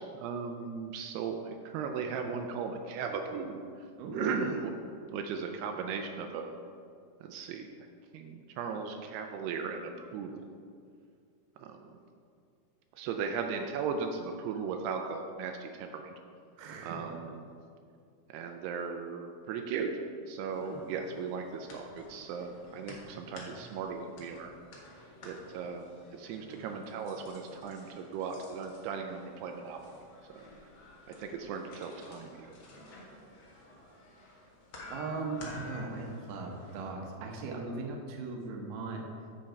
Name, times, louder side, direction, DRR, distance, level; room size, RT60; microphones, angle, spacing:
voice 1, 0.0-3.6 4.2-4.7 5.1-6.5 7.2-7.7 8.1-10.4 11.6-11.8 13.0-16.1 16.8-17.4 18.3-19.9 20.3-24.5 25.2-25.9 26.2-29.9 30.3-30.4 31.1-32.3, right 5 dB, 85° right, 4 dB, 2.6 m, -37 dB
voice 2, 4.0-4.5 16.6-17.0 34.9-39.0, right 3 dB, 70° right, 1 dB, 2.3 m, -38 dB
sound 1, 20.5-36.9, left 1 dB, 80° left, 1.1 m, -51 dB
7.7 x 7.1 x 5.1 m, 2.3 s
omnidirectional pair, 4.7 m